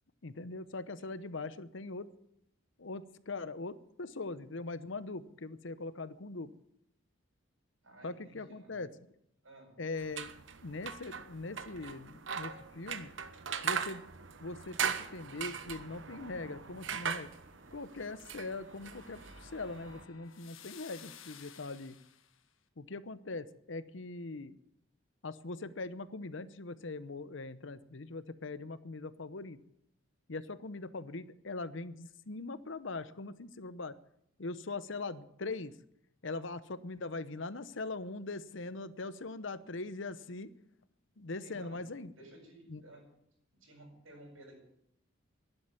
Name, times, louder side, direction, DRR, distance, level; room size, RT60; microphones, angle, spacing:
voice 1, 0.2-2.1 2.8-6.5 8.0-8.9 9.8-10.3 10.6-13.1 13.6-14.1 14.4-17.3 17.7-21.9 22.8-24.6 25.2-29.6 30.3-33.9 34.4-35.7 36.2-40.5 41.2-42.1 42.7-42.8, left 3 dB, 65° left, 14 dB, 0.9 m, -41 dB
voice 2, 7.8-8.8 9.4-9.7 41.4-41.8 42.1-43.0 43.6-44.6, right 1 dB, 85° right, -1 dB, 7.6 m, -55 dB
sound 1, 10.0-20.0, right 7 dB, 65° right, 1.1 m, -40 dB
sound 2, 17.8-22.4, left 9 dB, 85° left, 1.4 m, -56 dB
12.0 x 11.0 x 9.6 m, 0.74 s
head